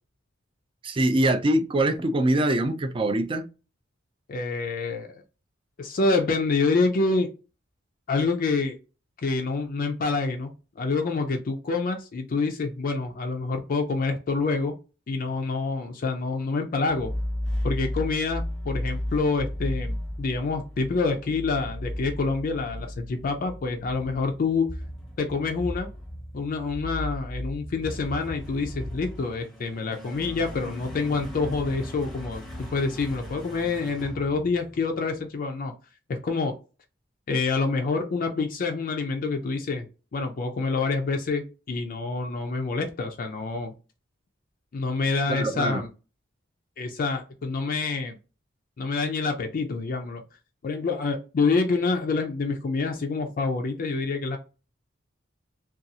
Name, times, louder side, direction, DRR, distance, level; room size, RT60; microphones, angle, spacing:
voice 1, 0.8-3.5 45.3-45.8, right 1 dB, 25° right, 0.4 m, -23 dB
voice 2, 4.3-5.2 5.8-7.3 8.1-8.8 9.2-14.7 15.1-17.1 17.6-24.7 25.2-25.9 26.3-35.7 36.1-36.5 37.3-39.9 40.1-43.7 44.7-45.9 46.8-48.2 48.8-50.2 50.6-54.4, left 4 dB, 45° left, 0.4 m, -27 dB
sound 1, 16.9-35.0, left 1 dB, ahead, 0.7 m, -35 dB
2.6 x 2.3 x 2.7 m
head